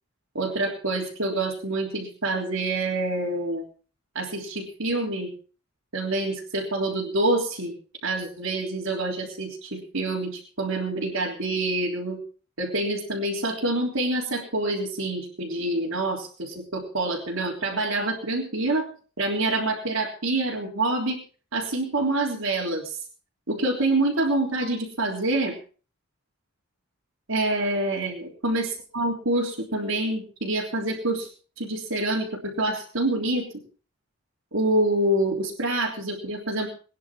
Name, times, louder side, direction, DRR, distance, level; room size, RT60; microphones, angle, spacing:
voice 1, 0.4-3.6 4.2-5.3 5.9-7.7 8.0-12.2 12.6-18.9 19.2-21.2 21.5-23.0 23.5-25.6 27.3-31.3 31.6-33.5 34.5-36.7, right 2 dB, 85° right, -4 dB, 3.6 m, -26 dB
22.0 x 10.5 x 4.5 m, 0.38 s
head